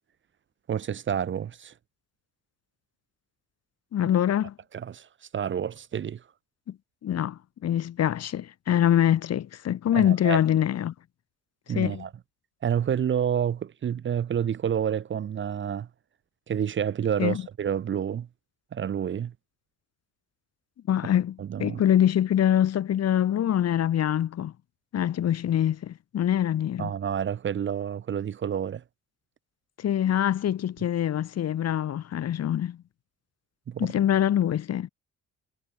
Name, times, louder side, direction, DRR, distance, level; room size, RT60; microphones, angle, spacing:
voice 1, 0.7-1.7 4.7-5.1 5.3-6.2 9.9-10.4 11.7-12.1 12.6-15.9 16.5-18.3 18.7-19.3 21.4-21.8 26.8-28.8 33.7-33.9, right 8 dB, 40° right, 0.7 m, -29 dB
voice 2, 3.9-4.5 6.7-6.8 7.0-10.9 11.7-12.1 17.2-17.4 20.9-24.5 24.9-26.9 29.8-32.8 33.8-34.9, left 10 dB, 55° left, 1.2 m, -24 dB
cardioid pair, 90°, 30 cm